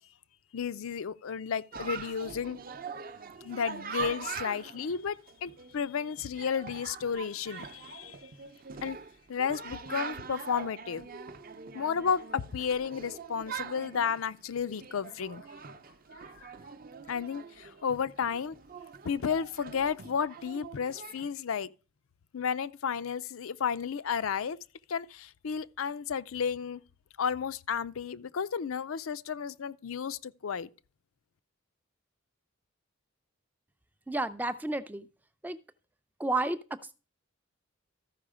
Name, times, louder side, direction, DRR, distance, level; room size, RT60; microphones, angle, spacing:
voice 1, 0.5-2.6 3.4-8.3 8.8-9.0 9.3-11.1 11.7-15.5 16.4-16.5 17.1-18.5 19.0-21.7 22.3-24.6 24.9-26.8 27.2-30.7, left 6 dB, 75° left, 0.5 m, -32 dB
Chatter, 1.7-21.3, right 6 dB, 45° right, 0.7 m, -43 dB
voice 2, 34.1-35.1 35.4-35.6 36.2-36.6, right 2 dB, 10° right, 0.4 m, -31 dB
13.5 x 5.5 x 5.0 m
head